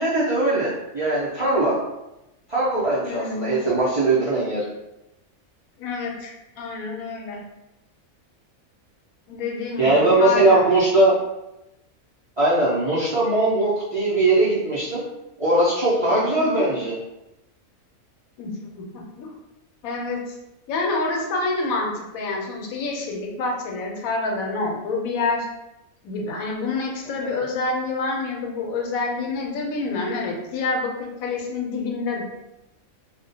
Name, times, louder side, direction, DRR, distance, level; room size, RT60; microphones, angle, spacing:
voice 1, 0.0-1.7 2.5-4.6 9.8-11.2 12.4-15.0 15.4-17.0 27.2-27.3, right 2 dB, 45° right, -10 dB, 0.4 m, -20 dB
voice 2, 3.1-3.6 5.8-7.4 9.3-10.7 16.1-16.5 18.4-18.5 18.9-19.3 19.8-20.4 20.7-25.5 26.0-32.2, left 3 dB, 90° left, 0 dB, 1.0 m, -27 dB
2.3 x 2.1 x 2.6 m, 0.93 s
omnidirectional pair, 1.4 m